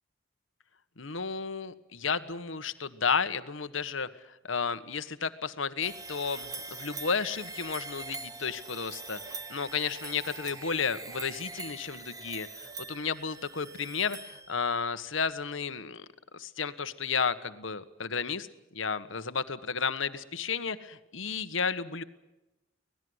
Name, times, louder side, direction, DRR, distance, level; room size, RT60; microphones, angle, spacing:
voice 1, 1.0-4.1 4.4-16.0 16.3-18.5 18.7-22.0, left 5 dB, 75° left, 11 dB, 1.4 m, -32 dB
sound 1, 5.8-14.9, right 4 dB, 15° right, 1.3 m, -43 dB
25.5 x 19.0 x 8.1 m, 0.96 s
head